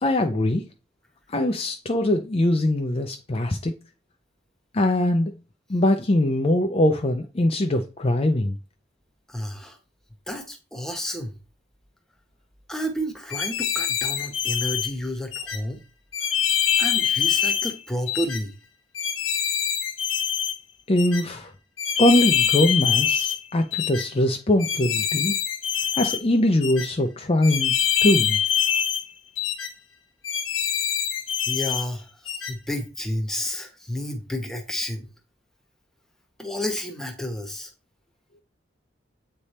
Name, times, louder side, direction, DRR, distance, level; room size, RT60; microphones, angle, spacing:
voice 1, 0.0-0.6 1.3-3.8 4.7-5.3 5.7-8.5 20.9-21.5 22.0-25.3 26.0-27.7 28.0-28.4, left 1 dB, 30° left, 0.5 m, -22 dB
voice 2, 9.3-9.8 10.3-11.4 12.7-15.8 16.8-18.5 31.5-35.1 36.4-37.7, equal, ahead, 1.1 m, -31 dB
sound 1, 13.3-14.9 15.3-15.6 16.1-17.7 18.1-18.4 18.9-20.5 21.0-21.2 21.8-23.4 23.7-24.1 24.6-26.2 26.6-26.9 27.4-29.0 29.4-29.7 30.2-31.8 32.3-32.5, left 8 dB, 85° left, 1.0 m, -24 dB
8.5 x 3.4 x 4.2 m
head